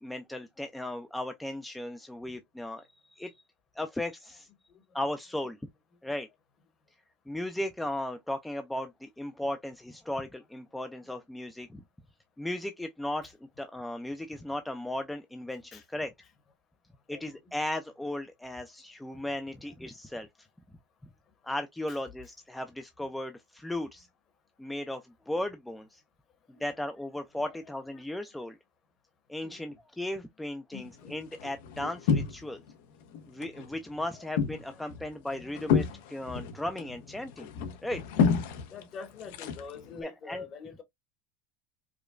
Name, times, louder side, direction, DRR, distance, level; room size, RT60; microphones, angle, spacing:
voice 1, 0.0-3.3 3.8-4.5 4.9-5.6 6.0-6.3 7.3-11.8 12.4-16.1 17.1-20.3 21.4-24.1 24.6-26.0 26.5-28.6 29.3-32.6 33.3-37.5 37.8-38.0 40.0-40.4, left 1 dB, 5° left, 0.3 m, -36 dB
voice 2, 27.5-28.2 29.4-29.8 30.7-31.2 34.1-34.2 35.0-35.1 35.4-35.6 35.9-36.0 38.7-40.8, left 5 dB, 30° left, 0.9 m, -46 dB
sound 1, 30.7-32.7 33.0-33.7 34.0-40.0, left 6 dB, 75° left, 0.7 m, -30 dB
4.9 x 2.1 x 2.4 m
cardioid pair, 165°, 0 cm